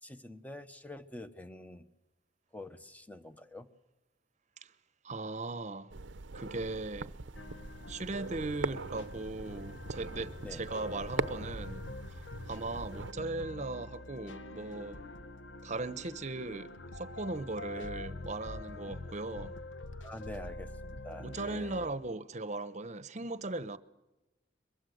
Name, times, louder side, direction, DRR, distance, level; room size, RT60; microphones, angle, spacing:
voice 1, 0.0-1.9 2.5-3.7 10.4-10.6 17.7-17.8 20.0-21.7, left 1 dB, 10° left, 1.0 m, -46 dB
voice 2, 5.0-5.9 6.3-7.1 7.9-11.8 12.5-15.0 15.6-19.5 21.2-23.8, right 2 dB, 40° right, 0.9 m, -38 dB
sound 1, 5.9-13.1, right 3 dB, 70° right, 0.8 m, -41 dB
sound 2, 7.3-21.9, left 2 dB, 80° left, 1.3 m, -45 dB
22.5 x 22.5 x 7.9 m
head